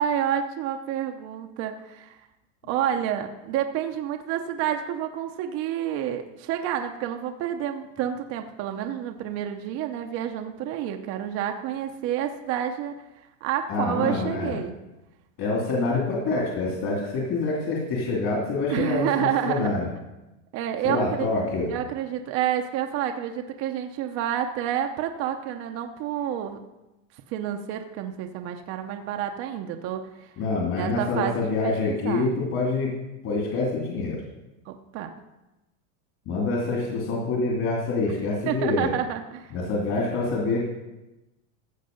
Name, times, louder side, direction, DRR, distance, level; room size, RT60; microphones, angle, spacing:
voice 1, 0.0-2.2 2.7-12.9 13.4-14.8 18.7-19.7 20.5-21.3 21.7-26.6 27.3-30.0 30.8-32.3 34.7-35.1 38.5-39.5, right 10 dB, 40° right, 5 dB, 0.8 m, -29 dB
voice 2, 13.7-14.6 15.4-19.9 20.8-21.7 30.4-32.9 33.2-34.2 36.3-38.9 39.5-40.7, left 3 dB, 45° left, -2 dB, 2.8 m, -26 dB
15.0 x 6.7 x 5.3 m, 0.99 s
supercardioid pair, 150°, 39 cm